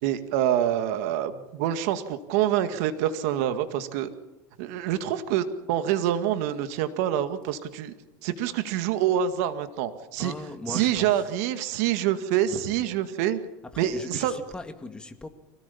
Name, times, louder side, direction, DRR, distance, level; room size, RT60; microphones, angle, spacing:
voice 1, 0.0-4.1 4.6-7.9 8.2-10.3 10.7-13.4 13.8-14.4, right 11 dB, 75° right, 9 dB, 2.0 m, -26 dB
voice 2, 10.2-11.2 12.5-12.9 13.6-15.3, left 2 dB, 10° left, 7 dB, 1.9 m, -39 dB
24.5 x 17.5 x 7.1 m, 1.0 s
supercardioid pair, 135°, 9 cm